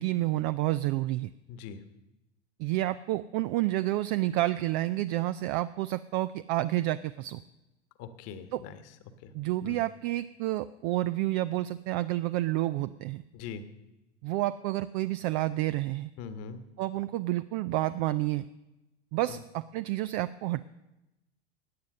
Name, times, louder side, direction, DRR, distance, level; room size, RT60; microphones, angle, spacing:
voice 1, 0.0-1.3 2.6-7.4 8.5-8.6 9.3-13.2 14.2-16.1 16.8-18.4 19.1-20.6, right 16 dB, 50° right, 13 dB, 0.5 m, -29 dB
voice 2, 1.5-1.8 8.0-8.8 9.2-9.3 9.6-9.8 13.3-13.6 16.2-16.6 19.3-19.4, left 6 dB, 50° left, 10 dB, 1.5 m, -41 dB
16.5 x 9.6 x 6.6 m, 0.96 s
hypercardioid pair, 90°, 32 cm